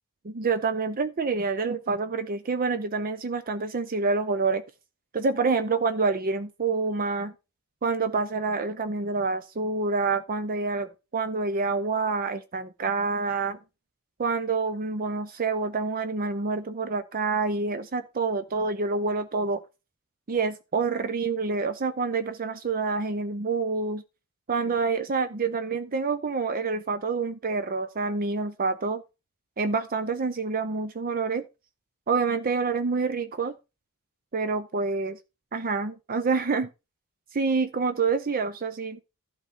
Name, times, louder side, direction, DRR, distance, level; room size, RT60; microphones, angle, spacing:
voice 1, 0.2-4.6 5.1-7.3 7.8-13.6 14.2-19.6 20.3-24.0 24.5-29.0 29.6-31.4 32.1-33.5 34.3-35.2 35.5-36.7 37.3-39.0, right 4 dB, 40° right, 0.6 m, -27 dB
12.0 x 6.0 x 4.2 m
head